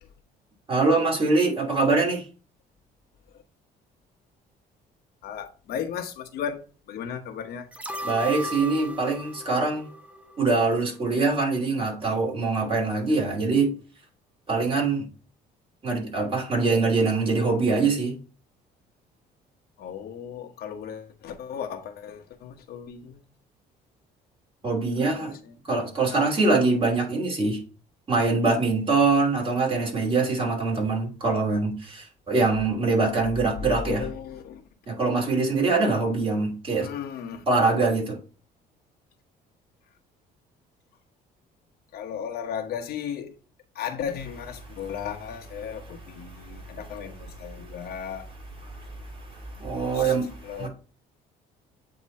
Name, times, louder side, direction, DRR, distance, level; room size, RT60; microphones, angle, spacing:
voice 1, 0.7-2.2 8.0-9.8 10.4-13.7 14.5-15.0 15.8-18.1 24.6-25.3 25.7-27.6 28.1-31.7 32.3-34.0 35.0-36.8 37.5-38.0 49.7-50.3 50.6-50.7, right 3 dB, 30° right, 2.7 m, -23 dB
voice 2, 5.2-6.6 6.9-7.7 19.8-23.2 25.0-25.1 33.7-34.6 36.8-37.4 41.9-43.3 43.7-48.3 49.9-50.1 50.4-50.7, left 8 dB, 65° left, 1.1 m, -35 dB
sound 1, 7.7-10.9 11.2-11.3, equal, 10° right, 0.8 m, -36 dB
8.5 x 3.0 x 4.2 m
cardioid pair, 110°, 17 cm